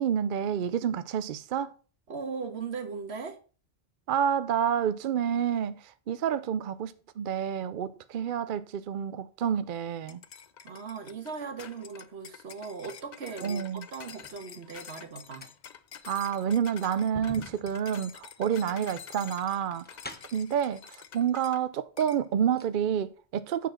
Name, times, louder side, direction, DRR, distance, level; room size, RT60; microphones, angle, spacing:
voice 1, 0.0-1.7 4.1-10.2 13.4-13.8 16.0-19.9 20.3-23.7, right 8 dB, 60° right, 0.6 m, -29 dB
voice 2, 2.1-3.4 10.6-15.5, right 5 dB, 80° right, 1.6 m, -38 dB
sound 1, 10.1-21.6 22.0-22.2, left 8 dB, 50° left, 0.6 m, -48 dB
sound 2, 13.6-14.4 15.2-20.5 21.5-21.6 22.0-22.8 23.1-23.2, left 2 dB, 10° left, 0.6 m, -48 dB
9.2 x 4.1 x 6.3 m
omnidirectional pair, 1.1 m